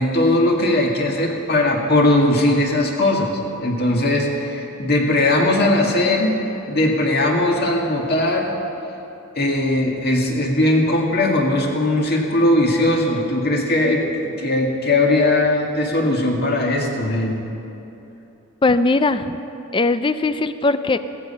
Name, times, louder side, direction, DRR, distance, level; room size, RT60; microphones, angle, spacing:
voice 1, 0.0-8.5 9.4-17.4, left 1 dB, 50° left, 0 dB, 2.0 m, -19 dB
voice 2, 18.6-19.4 19.7-21.0, left 3 dB, 25° left, 12 dB, 0.4 m, -19 dB
16.5 x 14.0 x 5.6 m, 2.9 s
head